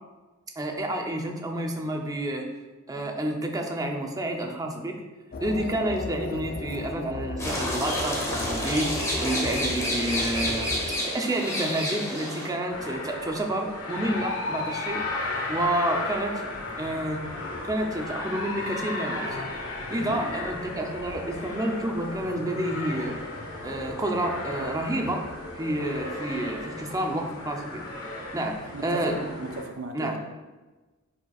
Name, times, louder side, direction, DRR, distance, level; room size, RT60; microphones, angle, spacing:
voice 1, 0.6-2.5 2.9-4.9 5.4-10.7 11.1-15.0 15.5-16.3 16.8-17.3 17.6-19.3 19.9-23.2 23.6-25.2 25.5-27.8 28.3-29.3 29.9-30.1, right 1 dB, 15° right, 2 dB, 0.7 m, -29 dB
sound 1, 5.3-11.0, left 3 dB, 45° left, 0.4 m, -35 dB
sound 2, 7.4-12.5, equal, 15° left, 1.3 m, -29 dB
sound 3, 12.7-29.6, left 2 dB, 85° left, 1.5 m, -35 dB
voice 2, 28.7-30.2, right 3 dB, 75° right, 5 dB, 0.7 m, -36 dB
10.5 x 4.5 x 2.4 m, 1.2 s
head